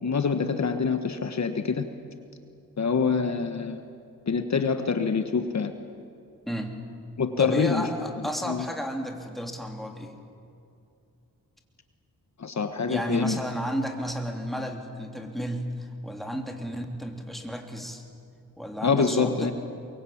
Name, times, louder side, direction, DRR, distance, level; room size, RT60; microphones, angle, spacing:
voice 1, 0.0-1.9 2.8-3.8 4.3-5.7 7.2-7.9 8.5-8.6 12.4-13.4 18.8-19.5, left 5 dB, 50° left, 7 dB, 1.4 m, -25 dB
voice 2, 7.4-10.1 12.9-18.0 18.6-19.5, equal, ahead, 2 dB, 3.2 m, -32 dB
23.0 x 23.0 x 8.7 m, 2.6 s
cardioid pair, 85°, 36 cm